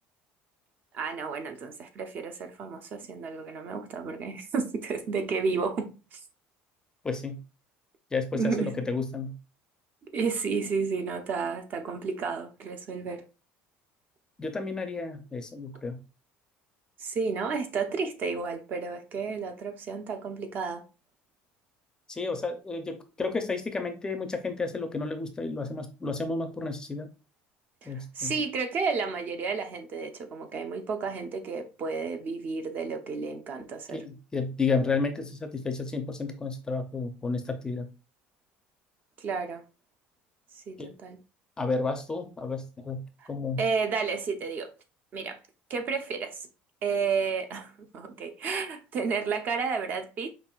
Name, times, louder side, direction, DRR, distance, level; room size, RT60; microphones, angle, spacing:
voice 1, 0.9-6.2 8.3-8.8 10.1-13.2 17.0-20.8 27.8-34.0 39.2-39.6 40.6-41.2 43.2-43.3 43.6-44.7 45.1-45.4 45.7-46.5 46.8-50.3, right 5 dB, 40° right, 0.6 m, -32 dB
voice 2, 7.0-7.4 8.1-9.4 14.4-16.0 22.1-27.1 27.9-28.3 33.9-37.9 40.8-40.9 41.6-43.6, left 4 dB, 15° left, 0.5 m, -31 dB
5.4 x 2.5 x 2.3 m
cardioid pair, 140°, 5 cm